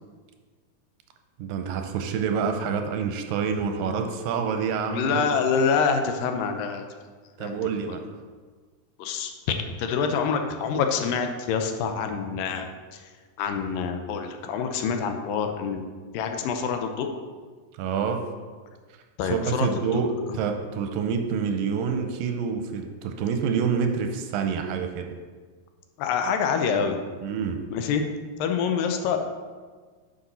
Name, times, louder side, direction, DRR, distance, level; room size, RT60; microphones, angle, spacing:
voice 1, 1.4-5.3 7.4-8.0 17.8-18.2 19.2-25.1 27.2-27.6, right 6 dB, 85° right, 6 dB, 2.3 m, -27 dB
voice 2, 4.9-6.8 7.4-7.6 9.0-13.0 13.4-15.9 16.1-17.1 19.2-20.0 26.0-27.0 27.7-28.0 28.4-29.2, left 6 dB, 85° left, 6 dB, 2.3 m, -26 dB
9.7 x 6.1 x 4.2 m, 1.5 s
omnidirectional pair, 4.0 m